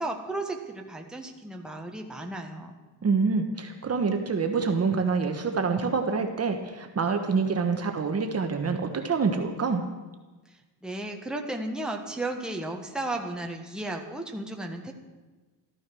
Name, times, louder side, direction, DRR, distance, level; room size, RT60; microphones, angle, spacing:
voice 1, 0.0-2.7 10.8-14.9, right 2 dB, ahead, 1 dB, 1.5 m, -34 dB
voice 2, 3.0-9.8, right 5 dB, 35° right, 5 dB, 1.2 m, -26 dB
14.0 x 13.0 x 6.2 m, 1.2 s
cardioid pair, 140°, 42 cm